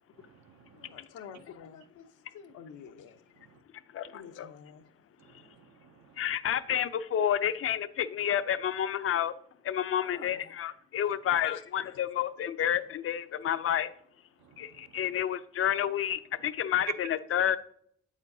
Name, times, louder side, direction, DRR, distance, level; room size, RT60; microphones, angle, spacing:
voice 1, 0.2-0.9 3.4-3.6 5.2-6.2 14.4-14.9, right 8 dB, 65° right, 0.7 m, -60 dB
voice 2, 0.7-2.1 2.3-3.2 4.1-4.9 10.0-10.4 11.3-11.6, left 9 dB, 85° left, 0.8 m, -45 dB
voice 3, 3.9-4.5 6.2-9.3 9.6-13.9 14.6-17.6, left 10 dB, 50° left, 0.5 m, -30 dB
8.2 x 7.4 x 2.7 m
cardioid pair, 90°, 30 cm